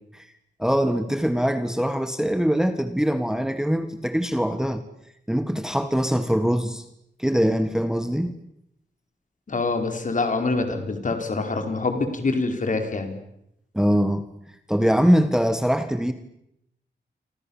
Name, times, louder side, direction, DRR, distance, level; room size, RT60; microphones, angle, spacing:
voice 1, 0.6-4.8 5.3-6.8 7.2-8.3 13.7-14.3 14.7-16.1, equal, 5° right, 10 dB, 1.6 m, -22 dB
voice 2, 9.5-13.2, left 3 dB, 45° left, 6 dB, 4.6 m, -25 dB
28.5 x 26.0 x 7.2 m, 0.79 s
wide cardioid pair, 125°, 18 cm